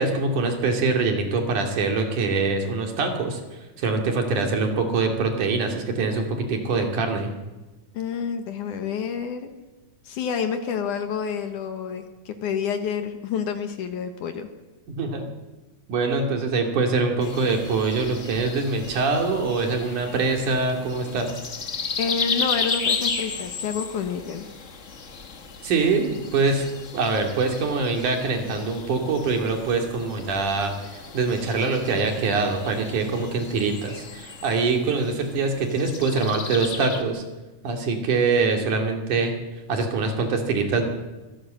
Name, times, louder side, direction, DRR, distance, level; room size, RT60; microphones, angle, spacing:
voice 1, 0.0-3.4 3.8-7.3 15.0-15.3 15.9-21.3 25.6-26.7 26.9-30.7 31.1-37.2 37.6-39.3 39.7-40.9, right 4 dB, 70° right, 3 dB, 4.0 m, -24 dB
voice 2, 7.9-9.5 10.0-14.5 22.0-24.5, left 6 dB, 70° left, 7 dB, 2.8 m, -29 dB
sound 1, 17.2-37.0, left 4 dB, 50° left, 0.8 m, -34 dB
24.5 x 16.5 x 7.7 m, 1.2 s
omnidirectional pair, 3.8 m